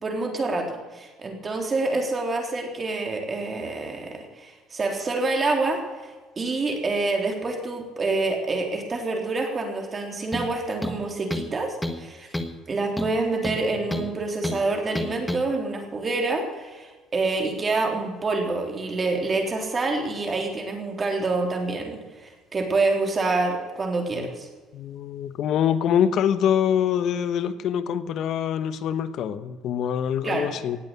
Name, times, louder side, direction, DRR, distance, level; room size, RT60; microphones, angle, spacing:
voice 1, 0.0-12.3 12.7-24.5 30.2-30.5, right 3 dB, 25° right, 2 dB, 3.6 m, -27 dB
sound 1, 10.3-10.5 10.8-11.5 11.8-12.0 12.3-12.6 13.0-14.1 14.4-14.6 14.9-15.4, left 1 dB, 5° left, 1.4 m, -30 dB
voice 2, 24.7-30.8, left 9 dB, 55° left, 12 dB, 1.1 m, -25 dB
18.5 x 8.2 x 8.4 m, 1.3 s
cardioid pair, 135°, 0 cm